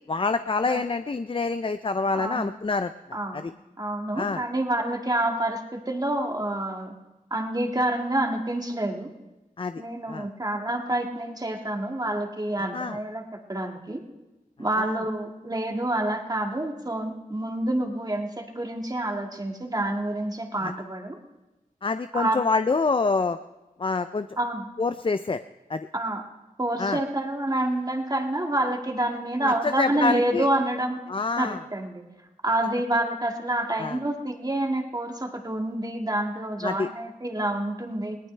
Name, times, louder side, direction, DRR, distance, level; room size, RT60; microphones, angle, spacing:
voice 1, 0.1-2.9 3.3-3.5 4.2-4.4 9.6-9.8 10.1-10.3 12.6-13.0 14.8-15.0 20.6-20.7 21.8-23.4 23.8-24.3 24.8-25.4 25.7-25.9 26.8-27.0 29.4-30.5 31.1-31.6 33.8-34.0 36.6-36.9, left 4 dB, 40° left, 11 dB, 0.4 m, -26 dB
voice 2, 2.2-2.5 3.1-3.5 3.8-6.9 7.3-9.1 9.8-13.2 13.5-14.0 14.6-21.2 22.1-22.4 24.4-24.7 25.9-26.2 26.6-32.0 32.4-38.2, right 1 dB, 25° right, 2 dB, 1.9 m, -28 dB
21.0 x 18.0 x 3.3 m, 1.1 s
wide cardioid pair, 60°, 14 cm